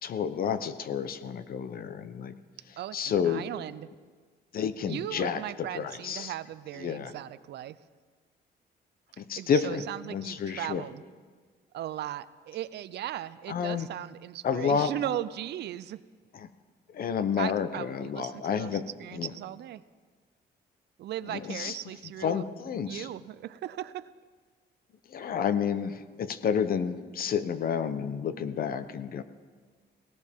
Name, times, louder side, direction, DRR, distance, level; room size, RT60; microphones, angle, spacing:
voice 1, 0.0-2.3 2.9-3.4 4.5-6.3 6.8-7.1 9.2-9.8 10.1-10.8 13.5-13.9 14.4-14.9 16.3-16.5 16.9-18.8 19.1-19.3 21.3-21.7 22.2-23.1 25.1-29.2, left 7 dB, 55° left, 12 dB, 0.8 m, -30 dB
voice 2, 2.8-3.9 4.8-7.8 9.1-11.0 11.7-16.0 17.4-19.8 21.0-22.5 22.9-24.1, right 12 dB, 70° right, 16 dB, 0.5 m, -37 dB
18.0 x 18.0 x 3.7 m, 1.5 s
cardioid pair, 120°, 18 cm